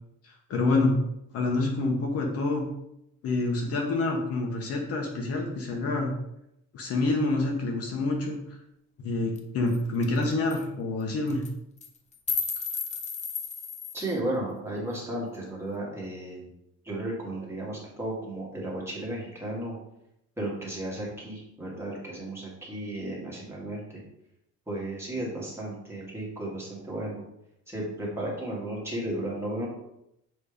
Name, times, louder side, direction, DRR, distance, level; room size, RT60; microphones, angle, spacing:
voice 1, 0.2-0.9 1.3-2.6 3.2-6.1 6.7-8.6 9.0-11.4, left 2 dB, 50° left, 1 dB, 1.2 m, -27 dB
sound 1, 9.4-9.5 9.7-9.8 10.0-10.2 10.5-10.6 11.3-11.5 11.8-14.1, left 5 dB, 20° left, 0.6 m, -33 dB
voice 2, 13.9-16.5 16.8-19.8 20.4-24.0 24.7-27.2 27.7-29.7, right 1 dB, 10° right, -5 dB, 2.0 m, -34 dB
7.1 x 3.4 x 5.1 m, 0.81 s
cardioid pair, 160°, 31 cm